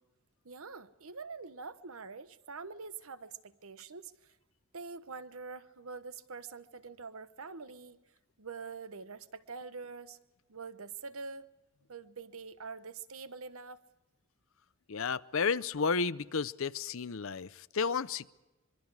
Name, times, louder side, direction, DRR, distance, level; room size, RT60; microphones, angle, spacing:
voice 1, 0.4-4.3 4.7-8.0 8.4-10.2 10.5-11.5 11.9-13.8, right 4 dB, 75° right, 1.0 m, -45 dB
voice 2, 14.9-18.3, left 5 dB, 65° left, 0.6 m, -32 dB
25.5 x 23.5 x 4.8 m
head